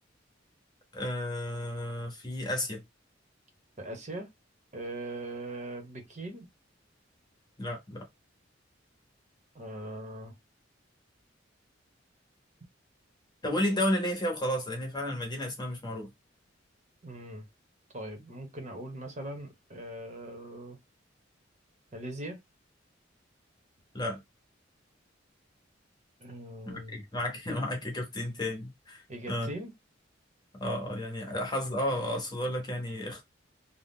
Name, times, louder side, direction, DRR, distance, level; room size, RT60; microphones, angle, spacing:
voice 1, 0.9-2.8 7.6-8.1 13.4-16.1 23.9-24.2 26.7-29.5 30.6-33.2, left 1 dB, 25° left, 0.9 m, -32 dB
voice 2, 3.8-4.3 4.7-6.4 9.5-10.3 17.0-17.4 17.9-20.8 21.9-22.4 26.2-27.0 29.1-29.7, right 1 dB, 40° right, 0.9 m, -40 dB
2.6 x 2.2 x 3.5 m
head